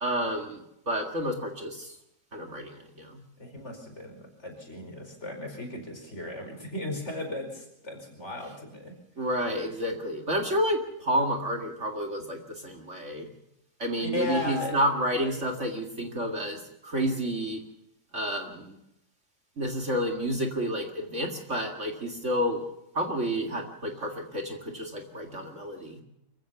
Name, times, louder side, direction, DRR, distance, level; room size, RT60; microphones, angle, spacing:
voice 1, 0.0-1.9 2.3-3.2 9.2-13.3 13.8-17.6 18.1-18.8 19.6-22.6 22.9-26.0, equal, 40° right, 3 dB, 2.3 m, -30 dB
voice 2, 3.4-8.9 14.0-14.8 15.1-15.2, left 2 dB, 40° left, 3 dB, 5.4 m, -35 dB
25.0 x 15.5 x 7.0 m, 0.83 s
omnidirectional pair, 1.9 m